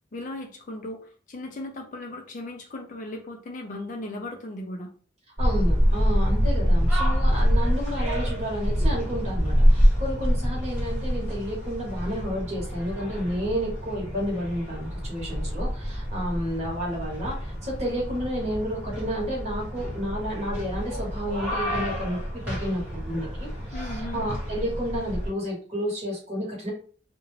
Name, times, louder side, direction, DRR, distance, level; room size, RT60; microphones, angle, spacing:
voice 1, 0.1-4.9 23.7-24.3, left 1 dB, 40° left, 2 dB, 0.4 m, -37 dB
sound 1, 5.4-25.3, equal, 10° right, 1.1 m, -26 dB
voice 2, 5.4-26.7, equal, 35° right, -3 dB, 1.1 m, -31 dB
2.4 x 2.1 x 3.1 m, 0.42 s
head